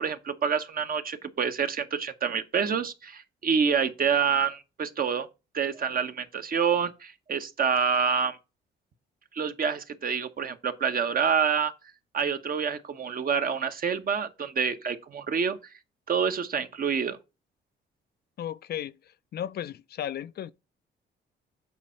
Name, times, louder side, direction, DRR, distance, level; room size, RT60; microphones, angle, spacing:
voice 1, 0.0-5.3 5.5-8.4 9.3-11.7 12.1-15.6 16.1-17.2, right 6 dB, 45° right, 1.0 m, -27 dB
voice 2, 18.4-18.9 19.3-20.5, left 10 dB, 55° left, 0.4 m, -34 dB
7.9 x 4.3 x 5.6 m
cardioid pair, 90°, 20 cm